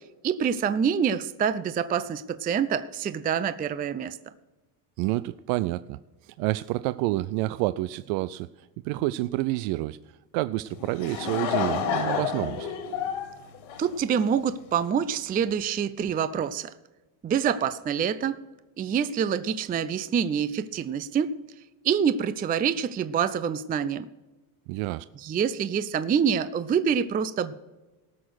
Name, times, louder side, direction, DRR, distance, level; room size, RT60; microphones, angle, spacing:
voice 1, 0.2-4.2 13.8-16.7 17.2-18.4 18.8-21.3 21.8-24.1 25.2-27.5, right 7 dB, 20° right, 14 dB, 0.4 m, -26 dB
voice 2, 5.0-6.0 6.2-8.5 8.8-10.0 10.3-12.7 24.7-25.1, right 17 dB, 70° right, 15 dB, 0.5 m, -28 dB
Laughter / Crowd, 10.7-14.5, left 7 dB, 75° left, 2.6 m, -30 dB
18.0 x 6.3 x 6.3 m, 1.2 s
supercardioid pair, 100°, 48 cm